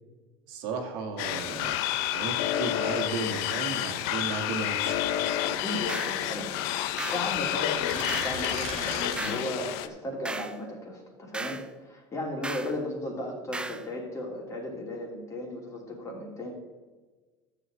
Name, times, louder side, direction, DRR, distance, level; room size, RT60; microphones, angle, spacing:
voice 1, 0.5-1.7 2.1-4.9, right 4 dB, 75° right, 2 dB, 1.9 m, -34 dB
sound 1, 1.2-9.9, left 12 dB, 70° left, 0.7 m, -30 dB
sound 2, 1.7-3.3 4.2-6.3 6.8-9.2, right 5 dB, 55° right, 2.0 m, -42 dB
voice 2, 5.4-6.6 7.1-16.5, left 1 dB, 25° left, 0 dB, 2.8 m, -35 dB
sound 3, 5.9-6.2 7.0-7.3 8.1-8.4 9.2-9.5 10.2-10.6 11.3-11.7 12.4-12.7 13.5-13.8, right 2 dB, 5° right, 0.4 m, -36 dB
13.5 x 7.9 x 3.8 m, 1.3 s
cardioid pair, 140°, 13 cm